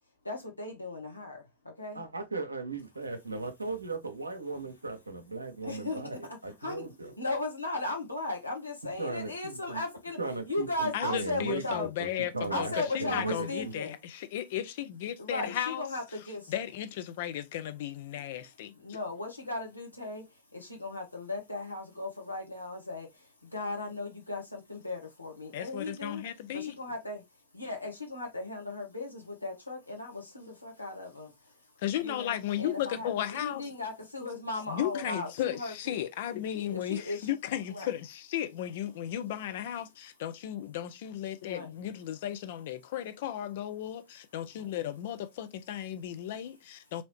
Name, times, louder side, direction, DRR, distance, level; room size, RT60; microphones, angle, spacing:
voice 1, 0.2-1.4 1.8-2.0 5.6-10.2 10.4-11.9 12.5-14.0 15.2-16.5 18.8-26.2 26.5-27.2 27.5-31.5 32.0-36.0 36.7-37.3 37.7-37.9 41.5-41.7 44.5-44.7, left 2 dB, 85° left, 1.0 m, -37 dB
voice 2, 1.9-7.1 9.0-9.8 10.2-12.7 13.0-13.7, right 3 dB, 80° right, 0.6 m, -37 dB
voice 3, 10.9-15.8 16.5-18.7 25.5-26.7 31.8-33.6 34.7-47.0, left 11 dB, 55° left, 0.4 m, -35 dB
2.9 x 2.7 x 3.0 m
figure-of-eight pair, 90°, 0 cm